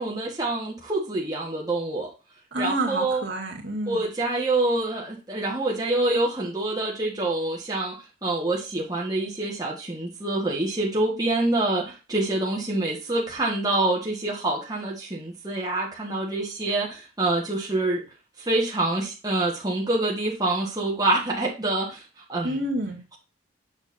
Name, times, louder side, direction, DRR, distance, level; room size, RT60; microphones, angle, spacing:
voice 1, 0.0-2.1 2.6-3.2 3.9-18.0 18.4-22.0 22.3-22.6, right 2 dB, 20° right, -3 dB, 1.6 m, -26 dB
voice 2, 2.5-4.0 22.4-23.0, right 1 dB, 70° right, -1 dB, 2.0 m, -28 dB
7.0 x 6.6 x 2.7 m, 0.31 s
head